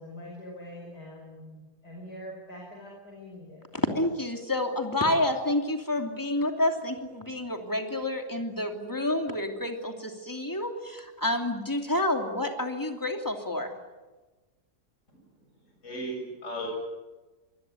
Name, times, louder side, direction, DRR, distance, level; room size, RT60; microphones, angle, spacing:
voice 1, 0.0-1.6 1.8-3.9, left 1 dB, 75° left, -1 dB, 6.0 m, -44 dB
voice 2, 3.9-13.7, left 1 dB, 10° left, 4 dB, 2.8 m, -29 dB
voice 3, 15.1-16.8, right 1 dB, 45° left, 1 dB, 8.3 m, -37 dB
25.0 x 21.5 x 9.8 m, 1.2 s
omnidirectional pair, 1.7 m